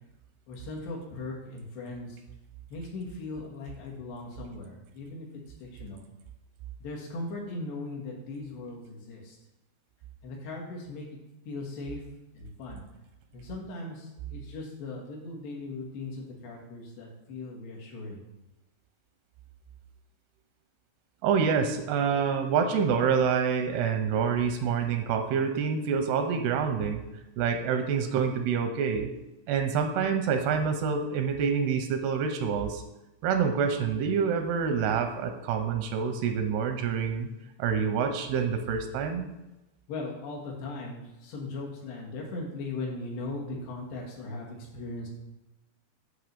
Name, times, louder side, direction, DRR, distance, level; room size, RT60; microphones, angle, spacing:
voice 1, 0.5-2.2 2.7-5.3 5.6-6.0 6.8-9.4 10.2-11.1 11.5-12.0 12.4-12.8 13.3-18.2 39.9-45.1, left 2 dB, 80° left, -2 dB, 3.6 m, -38 dB
voice 2, 21.2-27.0 27.4-29.1 29.5-32.8 33.2-37.3 37.6-39.3, right 6 dB, 85° right, 6 dB, 2.7 m, -27 dB
9.0 x 3.2 x 6.6 m, 1.0 s
omnidirectional pair, 4.8 m